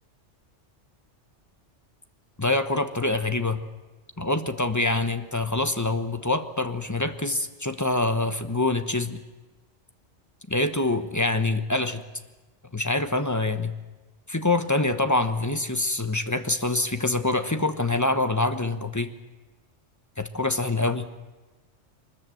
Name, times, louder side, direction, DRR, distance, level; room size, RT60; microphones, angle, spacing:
voice 1, 2.4-3.6 4.2-9.2 10.5-12.0 12.7-13.7 14.3-19.1 20.2-21.1, left 2 dB, 15° left, 9 dB, 1.0 m, -25 dB
23.5 x 20.0 x 7.8 m, 1.2 s
omnidirectional pair, 1.2 m